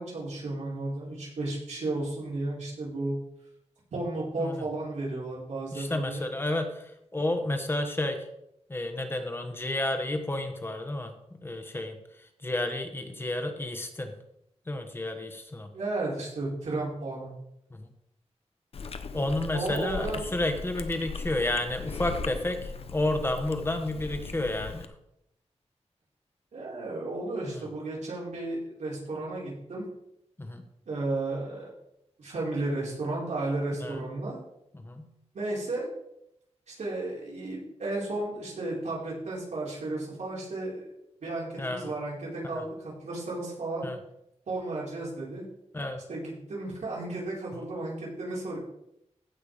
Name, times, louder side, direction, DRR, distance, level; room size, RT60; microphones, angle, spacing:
voice 1, 0.0-3.1 3.9-6.3 15.7-17.3 19.5-20.3 26.5-29.8 30.9-31.7 32.2-34.4 35.3-35.9 36.7-40.8 41.2-43.9 44.5-45.4 46.1-48.6, right 2 dB, 90° right, -5 dB, 4.8 m, -33 dB
voice 2, 5.7-8.3 8.7-11.9 12.4-14.1 14.7-15.7 17.7-17.9 19.1-24.9 27.5-27.6 30.4-30.6 33.8-34.0 34.7-35.1 41.6-41.9 42.5-42.6 43.8-44.0 45.7-46.0 47.6-47.7, left 1 dB, 20° left, 6 dB, 1.2 m, -31 dB
Chewing mastication, 18.7-24.9, left 5 dB, 55° left, 0.7 m, -38 dB
15.5 x 6.0 x 5.0 m, 0.81 s
wide cardioid pair, 180°, 12 cm